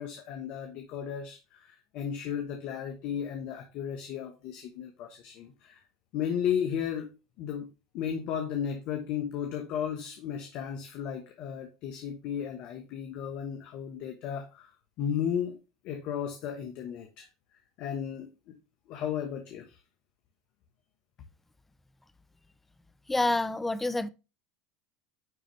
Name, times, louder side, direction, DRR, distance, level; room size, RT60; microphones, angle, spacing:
voice 1, 0.0-5.8 6.1-7.1 7.4-7.7 7.9-14.7 15.0-15.6 15.8-17.3 17.8-18.6 18.9-19.8, left 8 dB, 55° left, 1.1 m, -34 dB
voice 2, 23.1-24.1, left 2 dB, 10° left, 0.6 m, -27 dB
9.5 x 4.0 x 3.2 m
hypercardioid pair, 100°, 2 cm